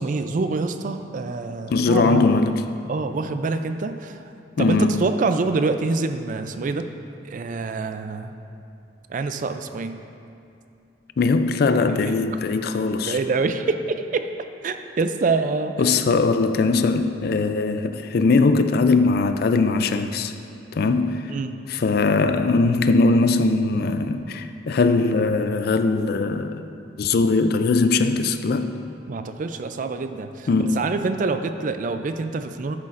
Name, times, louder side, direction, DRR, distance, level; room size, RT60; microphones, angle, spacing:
voice 1, 0.0-2.2 2.9-4.2 4.6-6.9 7.3-8.3 9.1-10.0 12.0-12.2 13.0-14.3 14.6-15.8 21.3-21.6 29.1-32.8, right 3 dB, 45° right, 9 dB, 0.3 m, -26 dB
voice 2, 1.7-2.6 4.6-5.1 11.2-13.2 15.8-20.3 20.7-21.3 21.7-26.6 27.0-28.7 30.5-30.8, left 3 dB, 55° left, 9 dB, 0.4 m, -20 dB
10.5 x 8.3 x 2.5 m, 2.6 s
head